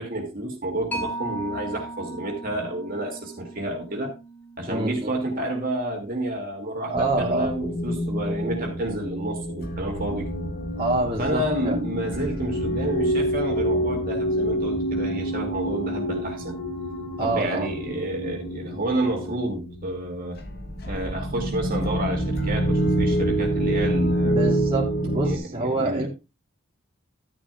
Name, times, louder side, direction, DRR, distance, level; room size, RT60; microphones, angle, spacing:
voice 1, 0.0-4.1 4.6-10.4 11.2-16.6 17.2-20.4 20.9-24.5 25.2-26.1, right 1 dB, 40° right, 2.5 m, -30 dB
Mallet percussion, 0.9-8.0, right 2 dB, 10° left, 1.6 m, -39 dB
voice 2, 4.7-5.1 6.9-7.5 10.8-11.8 17.2-17.7 24.2-26.1, right 2 dB, 25° right, 2.5 m, -26 dB
sound 1, 6.9-25.4, right 1 dB, 50° left, 1.6 m, -27 dB
12.5 x 10.5 x 2.4 m
head